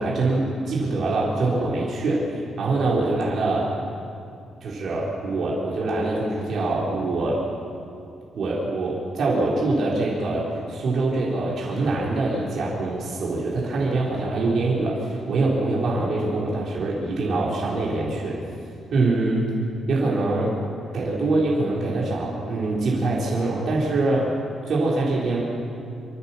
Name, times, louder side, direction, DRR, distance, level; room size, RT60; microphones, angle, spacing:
voice 1, 0.0-3.7 4.6-7.4 8.3-18.4 18.9-19.5 19.9-20.6 20.9-24.3 24.7-25.4, right 2 dB, 55° right, -5 dB, 3.9 m, -24 dB
26.0 x 14.5 x 7.1 m, 2.5 s
cardioid pair, 165°, 0 cm